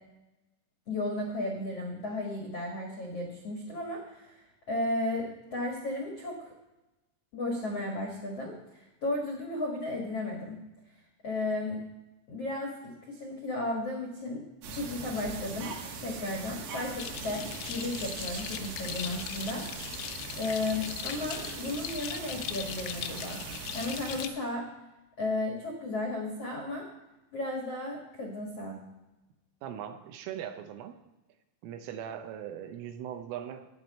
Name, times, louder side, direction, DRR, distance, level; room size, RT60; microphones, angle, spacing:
voice 1, 0.9-6.5 7.3-10.6 11.2-11.8 12.3-14.4 14.7-15.7 16.0-19.6 20.4-23.4 23.7-24.7 25.2-26.8 27.3-28.8, left 2 dB, 70° left, 0 dB, 1.4 m, -34 dB
sound 1, 14.6-24.3, right 4 dB, 65° right, 2.8 m, -41 dB
sound 2, 17.0-24.3, left 11 dB, 85° left, 2.4 m, -40 dB
voice 2, 29.6-31.0 31.6-33.7, right 9 dB, 80° right, 7 dB, 3.3 m, -40 dB
15.0 x 10.0 x 4.3 m, 1.0 s
omnidirectional pair, 6.0 m